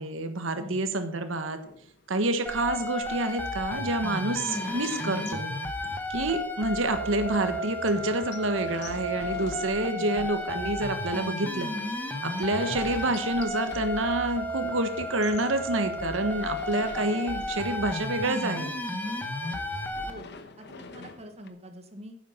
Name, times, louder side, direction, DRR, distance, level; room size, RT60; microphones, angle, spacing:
voice 1, 0.0-1.6 2.1-5.5 6.1-11.7 12.2-18.7, right 2 dB, 80° right, 8 dB, 1.4 m, -28 dB
sound 1, 1.6-6.6 7.0-7.1 7.3-7.4 7.9-14.6 15.0-18.0 18.3-21.5, left 4 dB, 60° left, 1.1 m, -47 dB
sound 2, 2.5-20.1, left 1 dB, 10° left, 1.4 m, -33 dB
voice 2, 9.8-10.3 20.1-20.3 20.6-22.2, equal, 35° right, 6 dB, 1.3 m, -44 dB
9.7 x 8.0 x 5.7 m, 0.65 s
head